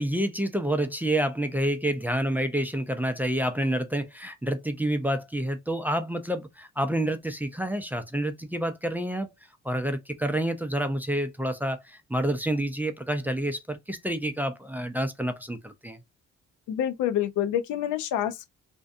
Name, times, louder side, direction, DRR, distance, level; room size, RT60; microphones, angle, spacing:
voice 1, 0.0-9.3 9.6-16.0, right 1 dB, 5° right, 0.4 m, -28 dB
voice 2, 16.7-18.5, left 10 dB, 75° left, 0.5 m, -27 dB
2.6 x 2.2 x 2.4 m
cardioid pair, 90°, 30 cm